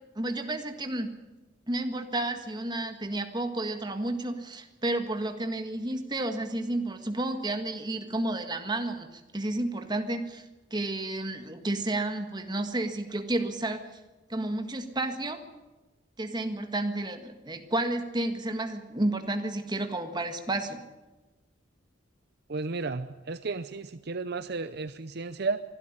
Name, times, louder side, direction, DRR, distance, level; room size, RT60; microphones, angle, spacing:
voice 1, 0.2-1.1 1.7-10.4 10.7-13.9 14.3-15.4 16.2-20.8, right 2 dB, 20° right, 6 dB, 1.7 m, -31 dB
voice 2, 22.5-25.6, right 3 dB, 55° right, 12 dB, 0.7 m, -33 dB
24.0 x 12.5 x 9.9 m, 1.2 s
head